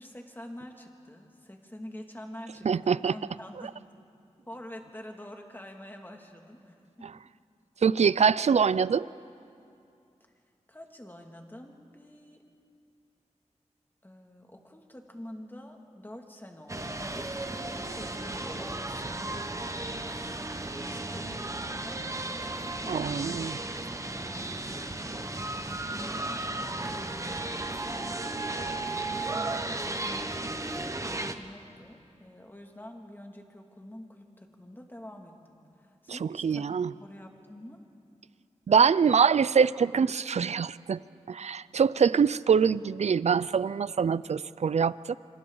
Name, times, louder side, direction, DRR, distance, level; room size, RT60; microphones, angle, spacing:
voice 1, 0.0-3.8 4.5-7.1 8.3-8.5 10.7-12.4 14.0-23.6 23.9-27.6 28.8-37.8, left 1 dB, 15° left, 2 dB, 2.3 m, -47 dB
voice 2, 2.6-3.1 7.8-9.1 22.9-23.6 36.1-36.9 38.7-41.0 41.3-45.1, right 6 dB, 65° right, 18 dB, 0.4 m, -24 dB
sound 1, 16.7-31.3, right 2 dB, 25° right, 1.1 m, -34 dB
26.5 x 25.0 x 3.9 m, 2.5 s
wide cardioid pair, 60°, 12 cm